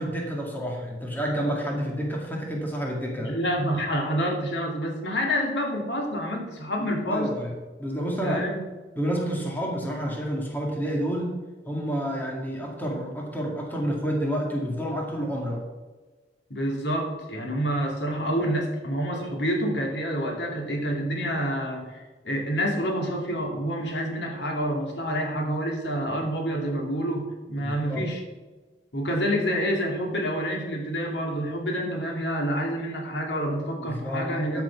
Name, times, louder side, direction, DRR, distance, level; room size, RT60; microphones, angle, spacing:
voice 1, 0.0-3.3 7.1-7.5 7.8-8.4 9.0-11.4 11.7-15.6 27.6-28.1 33.8-34.6, equal, 10° left, -1 dB, 2.1 m, -29 dB
voice 2, 3.2-7.3 8.2-8.6 16.5-28.2 28.9-34.6, equal, 80° left, 1 dB, 2.6 m, -28 dB
13.0 x 6.0 x 6.0 m, 1.3 s
head